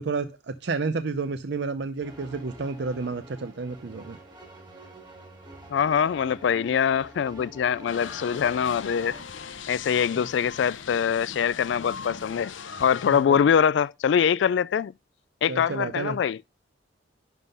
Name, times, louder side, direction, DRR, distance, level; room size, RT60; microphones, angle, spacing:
voice 1, 0.0-4.2 10.2-10.3 13.0-13.4 15.5-16.2, right 4 dB, 60° right, 0.6 m, -31 dB
sound 1, 2.0-9.2, right 1 dB, 25° right, 2.3 m, -47 dB
voice 2, 5.7-9.1 9.7-12.5 12.8-14.9 15.4-16.4, left 7 dB, 65° left, 0.3 m, -23 dB
sound 2, 7.9-13.3, left 6 dB, 85° left, 0.8 m, -39 dB
11.0 x 3.7 x 5.4 m
head